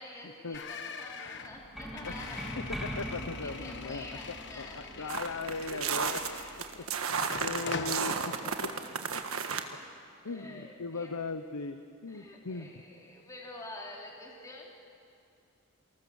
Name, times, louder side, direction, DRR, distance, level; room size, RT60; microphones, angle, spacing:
voice 1, 0.0-2.9 3.4-5.2 5.5-7.0 8.4-8.5 10.3-11.1 12.1-14.9, left 1 dB, 15° left, -2 dB, 3.3 m, -48 dB
sound 1, 0.5-6.8 7.2-8.0, left 4 dB, 50° left, 1.2 m, -43 dB
sound 2, 1.5-7.2, equal, ahead, 2.2 m, -43 dB
voice 2, 2.8-4.2 4.6-6.2 6.7-6.8 7.3-8.1 9.5-9.6 10.2-12.7, left 4 dB, 85° left, 8 dB, 0.9 m, -38 dB
sound 3, 5.1-9.6, right 6 dB, 70° right, 1.5 m, -33 dB
28.5 x 19.5 x 7.1 m, 2.5 s
head